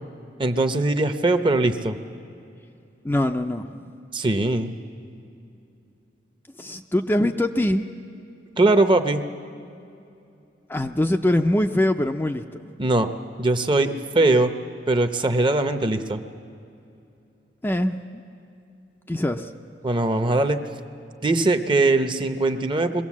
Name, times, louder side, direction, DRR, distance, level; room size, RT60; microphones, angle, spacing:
voice 1, 0.4-2.0 4.1-4.7 8.6-9.2 12.8-13.1 13.4-14.5 14.9-16.2 19.8-20.6 21.2-23.0, right 2 dB, 25° right, 8 dB, 0.7 m, -21 dB
voice 2, 3.0-3.8 6.6-7.8 10.7-12.6 17.6-18.0 19.1-19.5, left 1 dB, 10° left, 5 dB, 0.4 m, -23 dB
22.0 x 16.5 x 7.3 m, 2.7 s
head